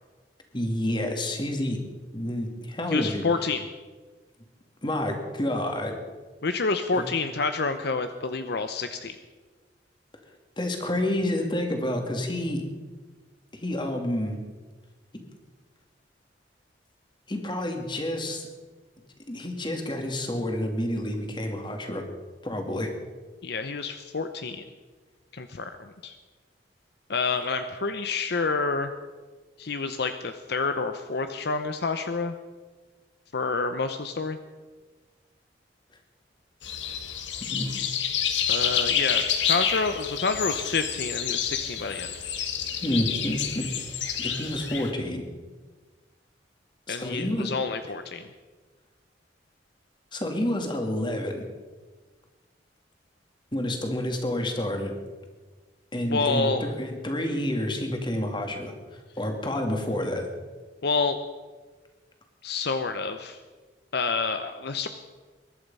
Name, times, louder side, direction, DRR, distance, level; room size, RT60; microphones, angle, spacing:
voice 1, 0.5-1.8 2.1-3.2 4.8-6.0 6.9-7.0 10.6-12.6 13.5-14.4 17.3-18.5 19.3-22.0 22.4-22.9 37.4-37.8 42.8-43.7 44.2-45.2 46.9-47.5 50.1-51.5 53.5-54.9 55.9-60.3, left 1 dB, 25° left, 4 dB, 2.4 m, -29 dB
voice 2, 2.9-3.7 6.4-9.2 23.4-24.6 25.3-26.1 27.1-28.9 29.6-32.3 33.3-34.4 38.5-42.1 46.9-48.3 56.1-56.6 60.8-61.2 62.4-63.4 63.9-64.9, left 4 dB, 60° left, 8 dB, 0.8 m, -28 dB
sound 1, 36.6-44.9, left 8 dB, 80° left, 1.6 m, -29 dB
22.0 x 11.5 x 5.5 m, 1.4 s
head